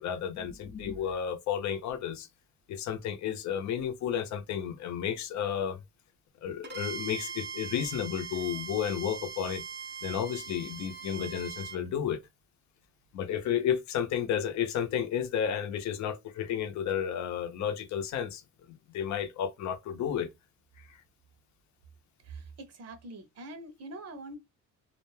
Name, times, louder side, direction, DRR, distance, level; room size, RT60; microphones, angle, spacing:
voice 1, 0.0-2.3 2.7-5.8 6.4-9.6 10.0-12.2 13.1-18.4 18.7-20.3, left 9 dB, 70° left, 0.6 m, -32 dB
Bowed string instrument, 6.6-11.8, right 6 dB, 40° right, 0.4 m, -41 dB
voice 2, 22.2-24.4, right 2 dB, 55° right, 0.8 m, -44 dB
2.5 x 2.1 x 3.1 m
cardioid pair, 90°, 30 cm